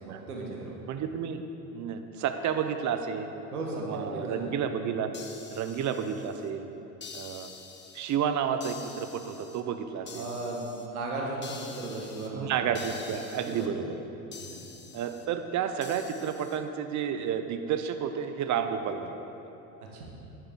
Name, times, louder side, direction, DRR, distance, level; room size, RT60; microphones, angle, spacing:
voice 1, 0.0-0.7 3.5-4.5 10.1-12.8 13.3-13.8 14.5-14.6 19.9-20.0, right 2 dB, 85° right, -1 dB, 1.7 m, -36 dB
voice 2, 0.9-1.4 1.7-3.3 3.8-5.1 5.5-6.7 7.1-7.5 7.9-10.3 12.3-14.0 14.9-19.1, right 8 dB, 40° right, 8 dB, 0.8 m, -31 dB
sound 1, 5.1-6.5 7.0-8.2 8.6-9.6 10.1-10.9 11.4-12.3 12.7-13.7 14.3-15.3 15.8-16.6, left 5 dB, 25° left, 1.1 m, -46 dB
10.5 x 10.0 x 3.8 m, 3.0 s
hypercardioid pair, 70°, 44 cm